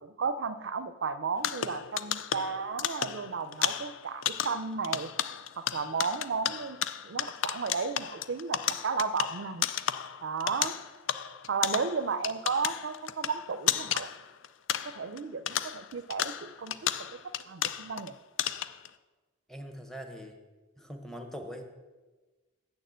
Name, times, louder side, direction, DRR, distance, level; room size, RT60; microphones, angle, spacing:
voice 1, 0.0-5.1 5.6-6.8 7.0-9.7 10.2-10.8 11.5-14.1 14.8-16.9 17.5-18.2, right 5 dB, 65° right, 12 dB, 0.5 m, -33 dB
sound 1, 1.4-15.2 15.5-18.1 18.4-18.9, left 10 dB, 65° left, 0.4 m, -33 dB
voice 2, 19.5-20.4 20.8-21.7, equal, ahead, 4 dB, 0.8 m, -42 dB
6.9 x 6.6 x 7.9 m, 1.3 s
head